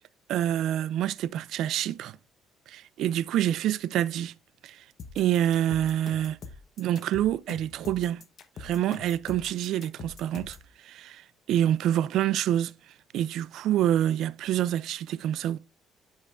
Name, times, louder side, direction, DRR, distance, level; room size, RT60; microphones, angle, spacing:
voice 1, 0.3-2.2 2.7-4.3 4.6-4.8 5.2-6.4 6.8-8.2 8.6-10.6 10.8-12.7 13.1-15.6, right 11 dB, 70° right, 0.4 m, -27 dB
sound 1, 5.0-10.7, left 5 dB, 50° left, 0.9 m, -44 dB
12.0 x 5.3 x 2.4 m
cardioid pair, 125°, 0 cm